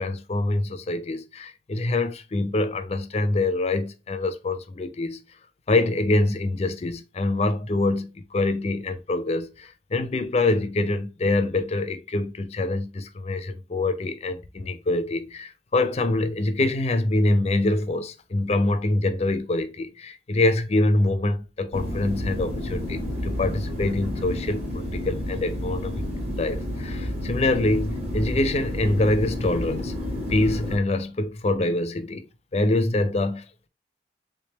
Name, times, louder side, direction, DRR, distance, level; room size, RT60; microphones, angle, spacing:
voice 1, 0.0-5.2 5.7-26.0 26.4-29.9 30.3-32.2 32.5-33.7, left 2 dB, 35° left, 0.5 m, -25 dB
sound 1, 21.7-30.8, left 1 dB, 40° right, 1.1 m, -30 dB
3.5 x 3.3 x 2.9 m
head